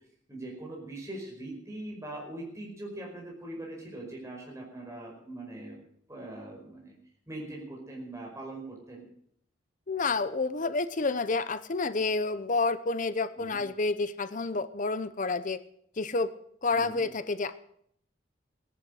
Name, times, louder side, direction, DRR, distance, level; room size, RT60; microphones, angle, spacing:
voice 1, 0.3-5.8 6.1-6.9 7.3-9.1 13.3-13.6 16.7-17.0, right 1 dB, 15° right, -1 dB, 5.2 m, -41 dB
voice 2, 9.9-15.6 16.0-16.3 16.6-17.5, left 3 dB, 40° left, 13 dB, 0.8 m, -29 dB
17.0 x 11.0 x 6.4 m, 0.68 s
head